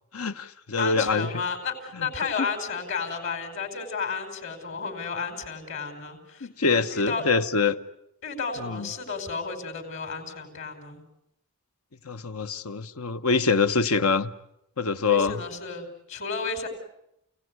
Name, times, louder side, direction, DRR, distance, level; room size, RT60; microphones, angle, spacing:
voice 1, 0.1-1.3 2.0-2.1 6.4-7.8 8.6-8.9 12.0-14.3 14.8-15.4, left 4 dB, 80° left, 11 dB, 1.2 m, -25 dB
voice 2, 0.8-7.2 8.2-11.0 15.0-16.7, left 5 dB, 60° left, 5 dB, 4.9 m, -32 dB
29.5 x 17.5 x 9.7 m, 0.84 s
head